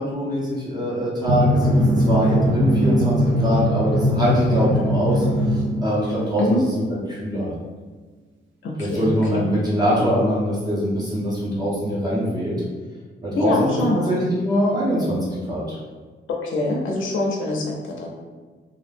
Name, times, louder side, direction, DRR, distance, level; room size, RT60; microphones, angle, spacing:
voice 1, 0.0-1.8 2.1-5.2 5.5-6.8 7.1-7.5 8.8-12.5 13.2-13.8 14.1-15.8, equal, 20° right, -7 dB, 0.6 m, -23 dB
Drum, 1.3-6.3, equal, 80° right, 0.5 m, -20 dB
voice 2, 8.6-9.1 9.3-9.4 13.4-14.2 16.4-18.1, left 2 dB, 75° left, -1 dB, 0.5 m, -24 dB
2.3 x 2.0 x 3.2 m, 1.4 s
wide cardioid pair, 170°, 20 cm